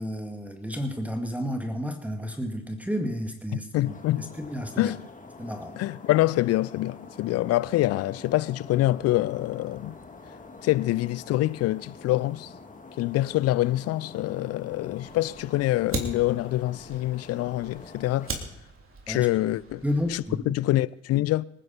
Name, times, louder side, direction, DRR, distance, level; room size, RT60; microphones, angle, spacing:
voice 1, 0.0-4.9 5.4-5.8 19.1-19.5 19.8-20.5, equal, 5° right, 2.1 m, -32 dB
voice 2, 3.5-4.3 4.8-5.0 5.8-9.9 10.6-12.5 13.0-18.3 19.1-19.8 20.1-21.4, left 16 dB, 50° left, 0.5 m, -25 dB
sound 1, 3.8-18.4, left 3 dB, 25° left, 2.3 m, -46 dB
Fire, 15.0-20.4, right 3 dB, 40° right, 3.4 m, -39 dB
25.5 x 10.0 x 4.4 m
figure-of-eight pair, 50°, 33 cm